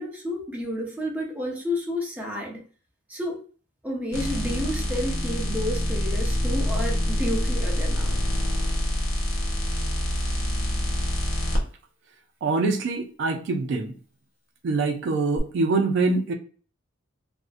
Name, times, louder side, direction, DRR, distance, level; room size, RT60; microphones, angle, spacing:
voice 1, 0.0-2.6 3.1-3.4 3.8-8.2, left 1 dB, 10° right, -2 dB, 0.6 m, -31 dB
sound 1, 4.1-11.6 15.4-15.5, equal, 80° left, 0.7 m, -26 dB
voice 2, 12.4-13.9 14.6-16.3, right 3 dB, 65° right, 5 dB, 0.3 m, -24 dB
2.5 x 2.0 x 2.4 m, 0.41 s
head